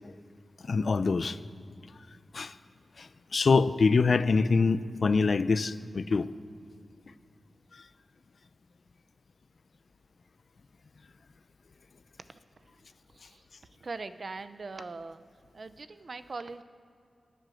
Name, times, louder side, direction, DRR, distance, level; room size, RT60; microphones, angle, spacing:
voice 1, 0.6-1.4 2.3-2.5 3.0-6.3 7.7-7.8, left 4 dB, 55° left, 14 dB, 0.4 m, -25 dB
voice 2, 13.8-15.2 15.5-16.6, right 3 dB, 45° right, 12 dB, 0.6 m, -41 dB
19.5 x 7.9 x 6.4 m, 2.5 s
wide cardioid pair, 140°, 0 cm